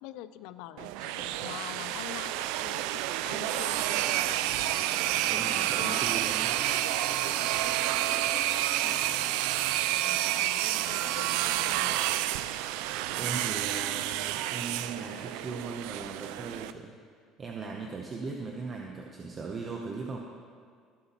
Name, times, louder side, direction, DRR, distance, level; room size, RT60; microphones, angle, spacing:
voice 1, 0.0-4.8 5.1-6.2 7.2-7.6 8.8-12.0, left 13 dB, 80° left, 14 dB, 0.4 m, -46 dB
sound 1, 0.8-16.7, right 14 dB, 85° right, 0.3 m, -29 dB
sound 2, 3.9-11.4, left 3 dB, 35° left, 1.9 m, -49 dB
voice 2, 5.3-6.5 13.1-16.9 17.4-20.2, right 4 dB, 30° right, 0 dB, 0.8 m, -38 dB
17.5 x 8.0 x 3.0 m, 2.1 s
cardioid pair, 150°, 0 cm